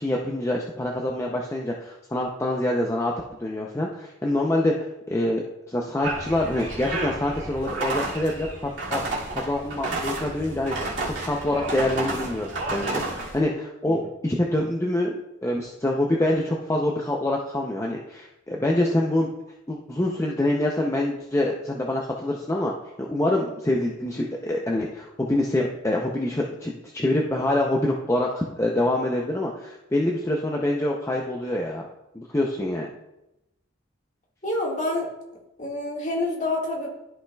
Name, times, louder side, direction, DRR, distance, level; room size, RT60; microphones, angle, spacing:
voice 1, 0.0-3.1 3.4-5.4 5.7-9.0 9.3-19.3 19.7-31.8 32.1-32.9, left 1 dB, 15° left, -1 dB, 0.5 m, -26 dB
sound 1, 6.0-13.4, right 2 dB, 70° right, 2.4 m, -31 dB
voice 2, 34.4-35.1 35.6-36.9, left 2 dB, 40° left, -2 dB, 1.8 m, -27 dB
13.0 x 5.7 x 2.3 m, 0.90 s
head